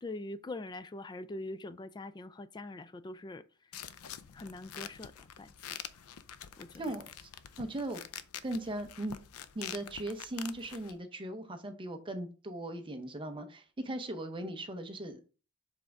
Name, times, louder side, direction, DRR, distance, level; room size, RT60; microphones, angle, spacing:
voice 1, 0.0-3.4 4.3-5.8 6.6-6.9, left 2 dB, 20° left, 0.3 m, -43 dB
sound 1, 3.7-10.9, left 9 dB, 90° left, 0.5 m, -46 dB
voice 2, 6.7-7.3 7.6-8.0 8.4-9.2 9.5-15.3, right 1 dB, 25° right, 0.7 m, -38 dB
7.4 x 3.4 x 3.7 m
head